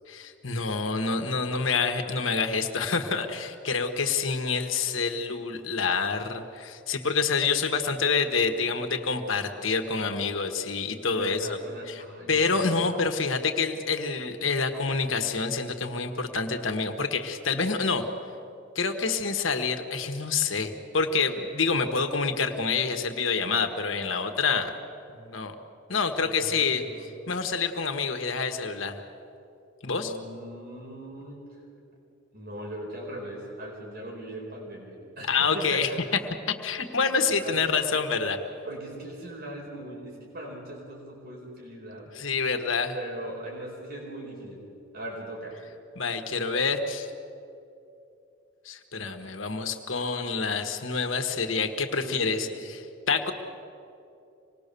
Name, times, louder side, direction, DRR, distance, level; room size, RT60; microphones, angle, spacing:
voice 1, 0.1-11.6 11.9-18.0 18.7-24.7 25.2-25.5 25.9-26.8 27.3-29.0 29.8-30.1 35.3-35.9 36.6-38.4 42.1-42.9 46.0-47.1 48.6-52.8 53.1-53.3, left 4 dB, 85° left, 6 dB, 1.5 m, -27 dB
voice 2, 11.1-13.0 26.1-27.1 30.0-31.5 32.3-35.8 37.0-37.1 37.4-37.6 38.6-42.1 42.9-44.6 44.9-45.6 52.0-52.6, right 1 dB, 50° right, -2 dB, 4.6 m, -40 dB
26.0 x 20.0 x 6.9 m, 2.7 s
head